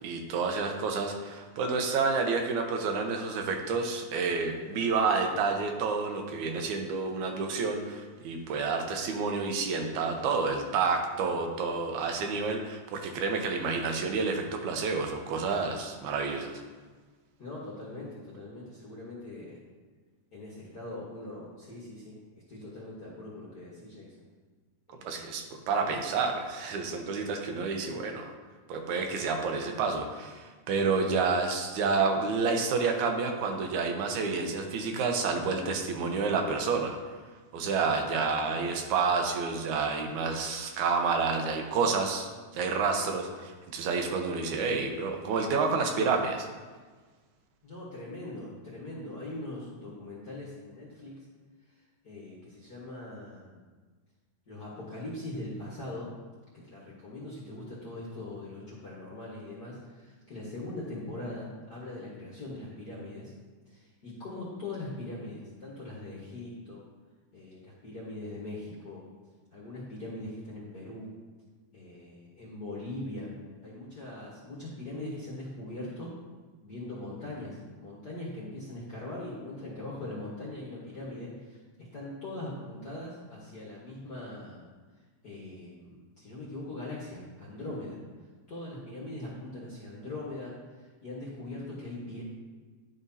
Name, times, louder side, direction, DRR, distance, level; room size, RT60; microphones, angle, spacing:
voice 1, 0.0-16.6 24.9-28.3 28.7-37.0 37.5-46.5, right 4 dB, 80° right, 4 dB, 2.1 m, -29 dB
voice 2, 17.4-19.6 20.3-22.1 22.5-24.3 24.9-25.4 27.9-28.0 47.6-51.1 52.0-53.6 54.5-56.1 56.5-63.3 63.6-66.8 67.3-69.0 69.5-71.1 71.7-73.3 73.6-76.1 76.6-84.6 85.2-88.0 88.5-92.2, left 2 dB, 50° left, -6 dB, 1.2 m, -41 dB
11.0 x 5.1 x 2.7 m, 1.4 s
omnidirectional pair, 3.5 m